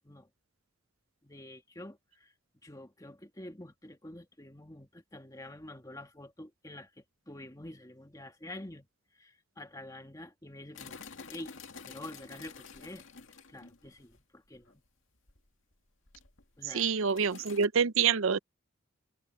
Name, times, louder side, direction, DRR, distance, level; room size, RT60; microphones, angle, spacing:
voice 1, 1.2-2.3 2.6-8.9 9.1-11.0 11.3-11.6 11.8-13.0 13.5-14.8 16.6-16.9, left 1 dB, 15° left, 1.6 m, -47 dB
sound 1, 10.7-14.2 14.5-14.7 15.3-15.7 16.1-17.7, left 5 dB, 70° left, 2.2 m, -50 dB
voice 2, 16.7-18.4, right 6 dB, 75° right, 0.6 m, -26 dB
head